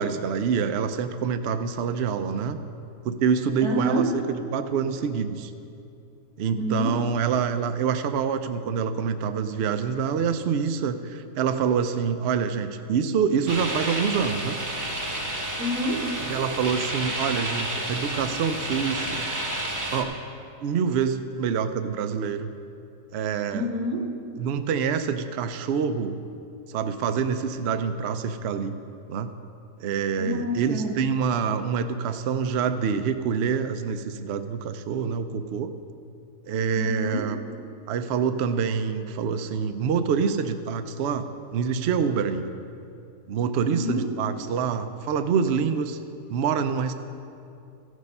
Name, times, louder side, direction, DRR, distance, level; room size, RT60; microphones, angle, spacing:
voice 1, 0.0-2.6 3.0-5.5 6.4-14.6 16.3-19.3 19.9-20.1 20.6-22.5 23.1-23.6 24.4-26.2 26.7-28.7 29.1-29.3 29.8-35.7 36.5-37.4 37.9-42.5 43.3-46.0 46.3-46.9, right 6 dB, 65° right, 9 dB, 0.6 m, -26 dB
voice 2, 3.6-4.2 6.6-7.0 15.6-16.1 23.5-24.1 30.2-31.0 36.8-37.3 43.7-44.1, equal, 85° right, 3 dB, 1.6 m, -28 dB
sound 1, 13.5-20.0, right 1 dB, 15° right, 0.8 m, -30 dB
14.5 x 6.4 x 5.4 m, 2.6 s
omnidirectional pair, 1.6 m